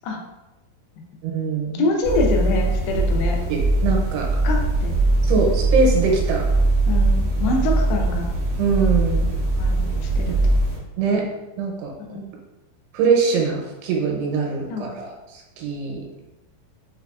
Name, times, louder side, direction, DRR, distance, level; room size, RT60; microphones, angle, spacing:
voice 1, 1.2-1.9 3.5-4.3 5.2-6.5 7.5-7.6 8.6-9.3 11.0-11.3 11.6-11.9 12.9-16.0, right 5 dB, 85° right, 0 dB, 2.8 m, -23 dB
voice 2, 1.8-3.4 4.4-4.9 6.9-8.3 9.6-9.9 10.2-10.6 12.1-12.3 14.7-15.0, left 2 dB, 85° left, 1 dB, 2.7 m, -25 dB
sound 1, 2.0-10.8, right 2 dB, 60° right, 1.2 m, -21 dB
6.4 x 2.3 x 2.3 m, 0.98 s
omnidirectional pair, 4.7 m